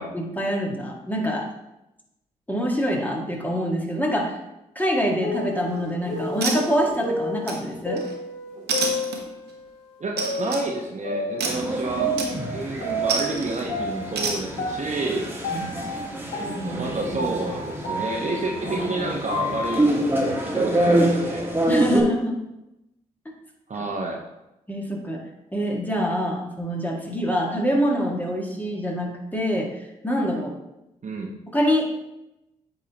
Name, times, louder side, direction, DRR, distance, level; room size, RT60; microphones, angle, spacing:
voice 1, 0.1-1.5 2.5-4.4 4.7-8.0 11.5-11.6 15.5-15.9 21.7-22.4 24.7-25.2 25.5-30.5 31.5-31.9, equal, 10° left, -1 dB, 1.6 m, -25 dB
sound 1, 4.8-9.6 10.2-13.4 13.7-19.8, equal, 75° left, 1.7 m, -31 dB
sound 2, 5.6-5.9 6.4-7.0 7.5-8.1 8.7-9.5 10.2-10.6 11.4-11.7 12.2-12.6 13.1-13.6 14.2-14.4, right 4 dB, 70° right, 1.1 m, -28 dB
voice 2, 10.0-12.1 12.5-15.3 16.8-21.6 23.7-24.2 31.0-31.3, right 2 dB, 40° right, 0 dB, 1.0 m, -29 dB
sound 3, 11.4-22.0, right 1 dB, 10° right, 1.5 m, -26 dB
8.3 x 3.8 x 2.9 m, 0.93 s
hypercardioid pair, 40°, 18 cm